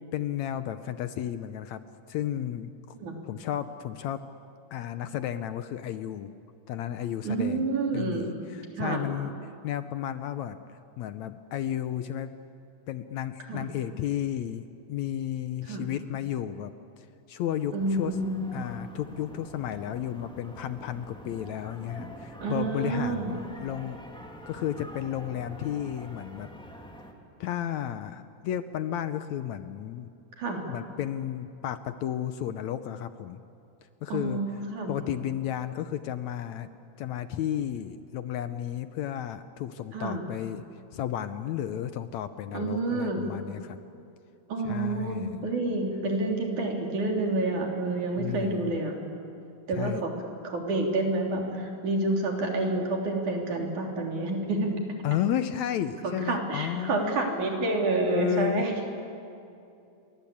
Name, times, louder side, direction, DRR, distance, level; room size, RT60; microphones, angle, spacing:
voice 1, 0.1-1.8 2.1-3.0 3.2-4.3 4.7-6.3 6.7-7.7 7.9-9.3 9.6-10.6 11.0-12.3 12.9-18.2 18.5-24.0 24.5-26.5 27.4-30.1 30.7-33.4 34.0-34.4 34.9-36.7 37.0-40.6 40.9-43.8 44.6-45.4 48.2-48.7 49.7-50.0 55.0-57.5 58.0-58.6, left 11 dB, 70° left, 11 dB, 1.9 m, -33 dB
voice 2, 7.2-8.4 8.8-9.0 13.5-13.7 15.7-15.9 17.7-18.4 22.4-23.4 30.4-30.6 34.1-35.0 39.9-40.2 42.5-43.2 44.5-48.9 49.7-50.1 50.4-54.7 56.0-58.7, right 2 dB, 65° right, 1 dB, 4.8 m, -29 dB
sound 1, 17.8-27.1, equal, ahead, 2.1 m, -46 dB
29.0 x 23.5 x 8.6 m, 2.6 s
omnidirectional pair, 3.7 m